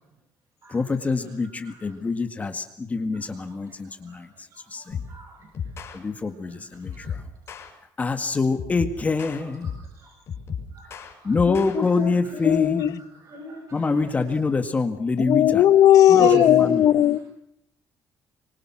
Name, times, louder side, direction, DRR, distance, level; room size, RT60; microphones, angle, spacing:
voice 1, 0.7-5.0 5.9-7.3 8.0-9.8 11.2-13.1 13.7-15.6 16.1-16.8, left 4 dB, 20° left, 7 dB, 1.9 m, -26 dB
voice 2, 4.5-5.5 6.9-7.1 10.0-10.1 10.7-11.3 12.5-12.6 13.2-13.8 16.2-16.8, right 4 dB, 50° right, -1 dB, 7.4 m, -34 dB
sound 1, 4.9-5.2 5.5-6.0 6.8-7.7 8.5-9.9 10.3-11.8, left 6 dB, 40° left, 6.1 m, -34 dB
voice 3, 11.5-12.1 12.4-12.9 15.2-17.2, left 11 dB, 60° left, 15 dB, 1.1 m, -17 dB
25.0 x 25.0 x 6.3 m, 0.73 s
cardioid pair, 150°, 7 cm